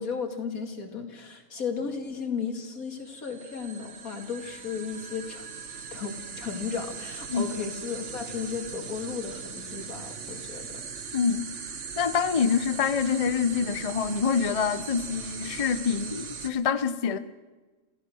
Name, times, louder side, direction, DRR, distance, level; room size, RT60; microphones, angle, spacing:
voice 1, 0.0-5.5 5.9-10.7, left 5 dB, 80° left, 2.7 m, -34 dB
sound 1, 2.9-16.5, right 6 dB, 60° right, 1.5 m, -39 dB
voice 2, 11.1-11.4 12.0-17.2, left 6 dB, 30° left, 0.7 m, -26 dB
27.0 x 16.0 x 6.4 m
omnidirectional pair, 1.5 m